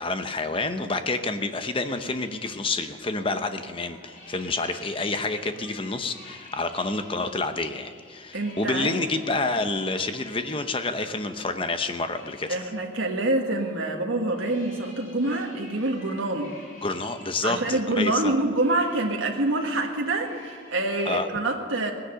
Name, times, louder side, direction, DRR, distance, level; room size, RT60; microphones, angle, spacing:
voice 1, 0.0-12.6 16.8-18.3 21.1-21.3, left 3 dB, 25° left, 8 dB, 0.8 m, -28 dB
sound 1, 1.5-20.8, left 2 dB, 45° left, 4.3 m, -50 dB
voice 2, 8.3-9.0 12.5-16.5 17.4-21.9, right 2 dB, 80° right, 1 dB, 1.6 m, -26 dB
18.0 x 10.0 x 6.8 m, 2.1 s
head